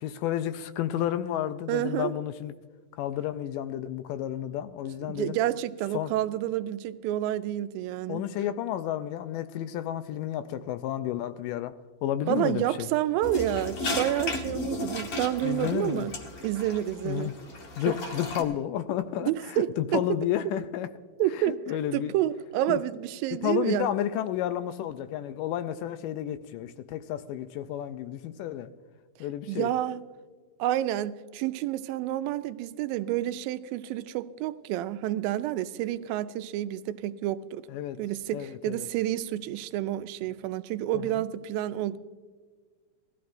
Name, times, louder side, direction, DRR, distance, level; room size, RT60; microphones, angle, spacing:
voice 1, 0.0-2.5 3.0-5.4 5.9-6.1 8.1-12.9 15.4-16.1 17.0-17.3 17.8-20.9 21.3-22.1 22.7-22.8 23.4-28.7 29.2-29.7 37.7-38.0 38.3-38.9 40.9-41.2, left 11 dB, 80° left, 2.0 m, -31 dB
voice 2, 1.7-2.1 5.1-8.2 12.3-16.1 16.4-17.3 19.2-20.2 21.2-23.9 29.5-30.0 30.6-37.6 38.0-42.0, right 13 dB, 85° right, 2.3 m, -29 dB
sound 1, 13.2-18.4, left 2 dB, 55° left, 1.7 m, -35 dB
19.0 x 14.0 x 2.6 m
omnidirectional pair, 4.1 m